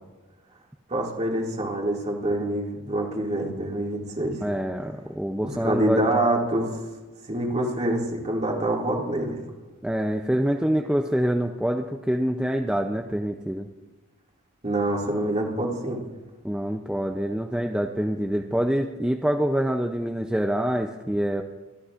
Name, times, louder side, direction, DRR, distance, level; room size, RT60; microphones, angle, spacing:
voice 1, 0.9-4.4 5.4-6.7 7.3-9.4 14.6-16.0, right 1 dB, 30° right, -1 dB, 2.2 m, -26 dB
voice 2, 4.4-6.0 9.8-13.7 16.4-21.4, equal, 5° right, 3 dB, 0.5 m, -26 dB
24.0 x 12.5 x 2.5 m, 1.2 s
head